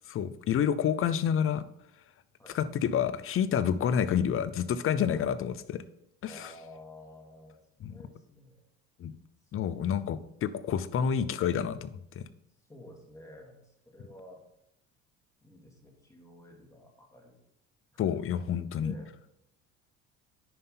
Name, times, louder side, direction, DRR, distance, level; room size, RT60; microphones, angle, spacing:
voice 1, 0.1-1.6 2.5-5.8 6.2-6.5 7.8-7.9 9.0-9.2 9.5-11.9 12.2-12.3 18.0-18.9, left 8 dB, 40° left, 15 dB, 0.6 m, -28 dB
voice 2, 2.4-3.0 4.9-5.5 6.2-8.6 9.4-9.6 12.6-14.4 15.4-17.4 17.9-18.2 18.8-19.1, left 1 dB, 10° left, 0 dB, 2.5 m, -51 dB
9.8 x 5.4 x 3.9 m, 0.78 s
supercardioid pair, 90°, 32 cm